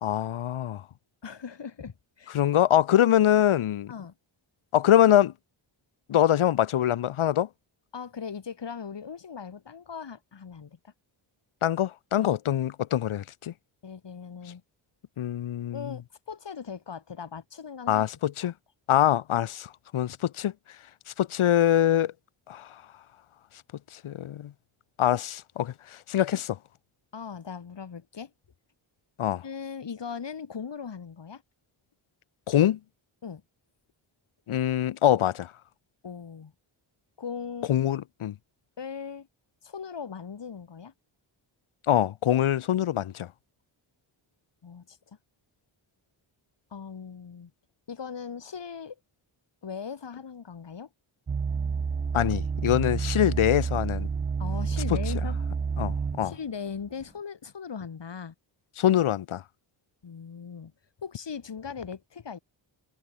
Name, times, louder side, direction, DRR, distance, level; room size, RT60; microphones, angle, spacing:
voice 1, 0.0-0.8 2.3-3.9 4.7-5.3 6.1-7.5 11.6-13.5 15.2-15.9 17.9-18.5 18.9-20.5 21.2-22.1 22.5-22.7 23.9-24.5 25.0-26.6 29.2-29.4 32.5-32.8 34.5-35.5 37.7-38.3 41.9-43.3 52.1-54.1 55.8-56.3 58.8-59.4, left 11 dB, 80° left, 1.0 m, -24 dB
voice 2, 1.2-2.4 3.9-4.1 7.9-10.9 12.2-12.3 13.8-14.6 15.7-18.1 18.4-18.5 27.1-28.3 29.4-31.4 33.2-33.4 36.0-36.5 37.2-37.7 38.8-39.3 39.6-40.9 44.6-45.2 46.7-47.5 47.9-49.0 49.6-50.9 54.4-55.4 56.2-58.3 60.0-60.7 61.0-62.4, left 6 dB, 60° left, 4.9 m, -39 dB
sound 1, 51.3-56.4 57.0-57.1, right 5 dB, 20° right, 0.4 m, -29 dB
wide cardioid pair, 110°, 48 cm